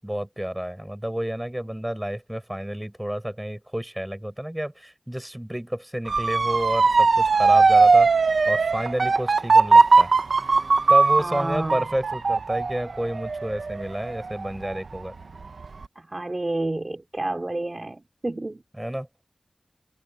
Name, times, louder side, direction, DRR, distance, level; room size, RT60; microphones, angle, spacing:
voice 1, 0.0-8.1 8.5-10.1 10.9-15.1 18.8-19.1, right 1 dB, 10° right, 7.9 m, -30 dB
Motor vehicle (road) / Siren, 6.1-15.0 15.4-15.8, right 4 dB, 85° right, 1.4 m, -19 dB
voice 2, 11.2-11.8 16.1-18.6, right 2 dB, 35° right, 3.4 m, -29 dB
wide cardioid pair, 70°, 0 cm